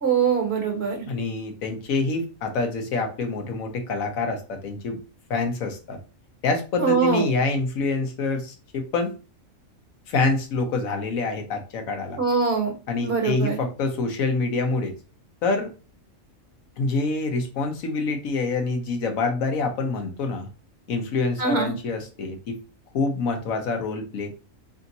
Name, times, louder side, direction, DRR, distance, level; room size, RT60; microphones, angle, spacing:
voice 1, 0.0-1.0 6.8-7.3 12.2-12.7 13.0-13.6 21.4-21.7, right 5 dB, 50° right, 1 dB, 1.3 m, -23 dB
voice 2, 1.1-5.0 5.3-6.0 6.4-9.1 10.1-12.2 12.9-14.9 15.4-15.7 16.8-20.5 20.9-22.6 22.9-24.3, left 3 dB, 80° left, 5 dB, 1.3 m, -26 dB
4.0 x 3.4 x 2.7 m, 0.33 s
omnidirectional pair, 1.4 m